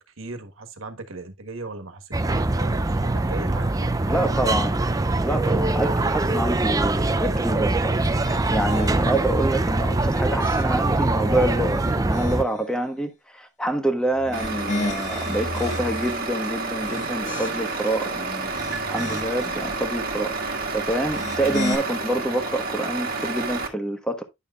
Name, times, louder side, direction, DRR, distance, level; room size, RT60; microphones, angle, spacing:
voice 1, 0.2-4.7, right 2 dB, 85° right, 1.5 m, -38 dB
sound 1, 2.1-12.4, right 2 dB, 20° right, 0.5 m, -23 dB
voice 2, 4.0-4.8 5.2-18.5 18.9-24.2, right 1 dB, 5° left, 1.3 m, -27 dB
sound 2, 8.0-9.3 9.9-11.0 11.5-12.6 14.1-16.2 16.7-17.9 18.4-19.5 21.0-21.8, left 2 dB, 35° left, 2.2 m, -34 dB
Truck, 14.3-23.7, right 3 dB, 50° right, 1.8 m, -29 dB
10.0 x 6.8 x 2.4 m
head